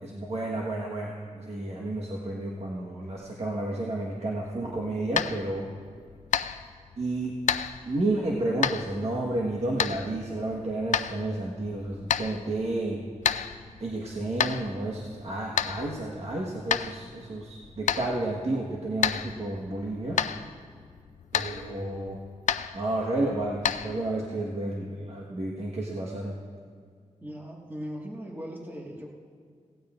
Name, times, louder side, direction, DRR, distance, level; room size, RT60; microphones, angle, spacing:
voice 1, 0.0-5.7 7.0-7.4 7.9-13.0 13.8-20.2 21.3-22.2 22.7-26.4, right 2 dB, 55° right, -3 dB, 1.4 m, -31 dB
sound 1, 4.5-24.3, left 8 dB, 85° left, 0.4 m, -33 dB
voice 2, 27.2-29.1, equal, 15° right, -2 dB, 1.8 m, -39 dB
17.0 x 16.5 x 2.5 m, 2.1 s
wide cardioid pair, 90°, 12 cm